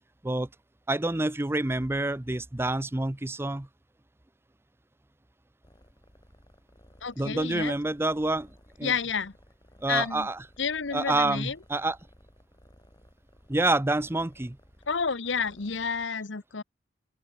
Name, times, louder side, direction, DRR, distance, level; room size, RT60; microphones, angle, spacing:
voice 1, 0.9-3.7 7.2-8.5 8.8-8.9 9.8-10.4 10.9-12.0 13.5-14.6, right 2 dB, 15° right, 0.6 m, -27 dB
sound 1, 5.6-16.1, equal, 20° left, 7.9 m, -58 dB
voice 2, 7.0-7.7 8.8-9.3 9.9-10.3 10.6-11.6 14.9-16.6, left 5 dB, 75° left, 1.1 m, -30 dB
open air
head